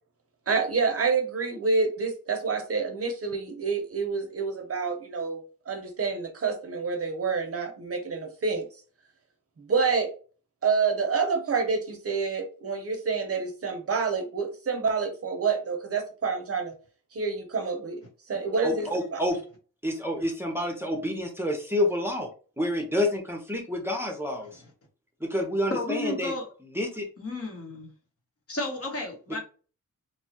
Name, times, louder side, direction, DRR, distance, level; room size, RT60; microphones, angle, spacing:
voice 1, 0.5-8.7 9.6-10.1 10.6-16.7 17.1-18.0 18.3-19.2, right 4 dB, 45° right, 5 dB, 0.7 m, -28 dB
voice 2, 18.6-19.4 19.8-22.3 22.6-24.6 25.2-26.3 26.7-27.0, left 1 dB, 5° right, 2 dB, 0.7 m, -28 dB
voice 3, 25.7-26.5 27.2-27.9 28.5-29.4, left 2 dB, 45° left, 1 dB, 1.0 m, -33 dB
3.1 x 2.2 x 2.8 m, 0.37 s
wide cardioid pair, 110°, 34 cm